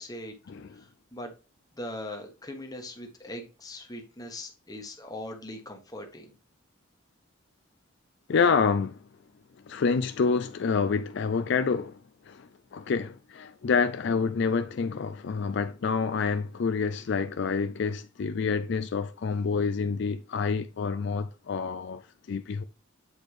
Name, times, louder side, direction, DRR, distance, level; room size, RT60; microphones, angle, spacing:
voice 1, 0.0-0.4 0.7-1.3 1.7-6.3, left 1 dB, 20° left, 1.2 m, -40 dB
voice 2, 8.3-9.0 9.7-12.0 12.3-22.0 22.3-22.6, left 5 dB, 60° left, 0.4 m, -27 dB
8.1 x 4.3 x 3.2 m
head